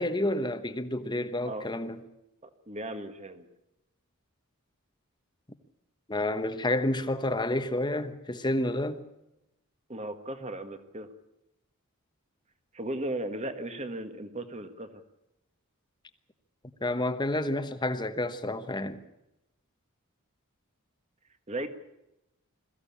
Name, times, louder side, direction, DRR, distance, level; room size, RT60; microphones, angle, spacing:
voice 1, 0.0-2.0 6.1-9.0 16.8-19.0, left 1 dB, 20° left, 1.2 m, -29 dB
voice 2, 2.7-3.5 9.9-11.1 12.7-15.0 21.5-21.7, right 1 dB, 30° right, 1.7 m, -36 dB
22.0 x 15.5 x 8.6 m
head